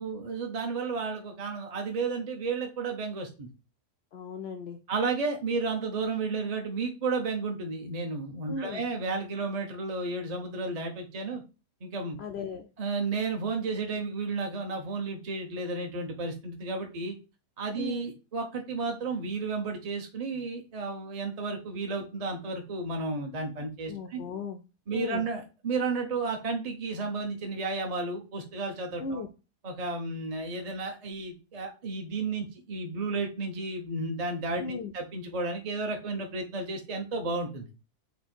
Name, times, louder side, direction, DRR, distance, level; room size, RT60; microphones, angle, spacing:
voice 1, 0.0-3.5 4.9-11.4 11.8-12.2 12.8-17.1 17.6-24.2 24.9-29.2 29.6-37.7, right 3 dB, 40° right, 2 dB, 0.5 m, -32 dB
voice 2, 4.1-4.8 8.5-8.8 12.2-12.7 17.8-18.1 23.9-24.6 24.9-25.2 29.0-29.3 34.6-34.9, left 4 dB, 80° left, 4 dB, 0.5 m, -36 dB
4.4 x 2.8 x 4.2 m, 0.31 s
omnidirectional pair, 1.7 m